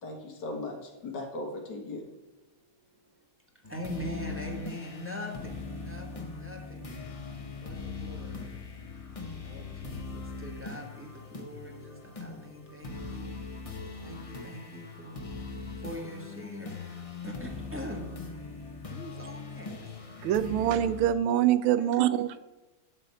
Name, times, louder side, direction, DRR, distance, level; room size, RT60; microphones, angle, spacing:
voice 1, 0.0-2.1, left 2 dB, 60° left, 3 dB, 2.0 m, -38 dB
voice 2, 3.5-6.9 7.6-8.4 9.4-13.3 14.0-15.2 15.8-16.7 17.2-18.1 18.9-19.9 21.8-22.4, equal, 5° right, 0 dB, 1.3 m, -42 dB
sound 1, 3.6-21.1, left 4 dB, 45° left, 0.4 m, -41 dB
voice 3, 20.2-22.4, right 11 dB, 85° right, 14 dB, 1.4 m, -25 dB
11.5 x 4.1 x 7.7 m, 1.0 s
omnidirectional pair, 2.2 m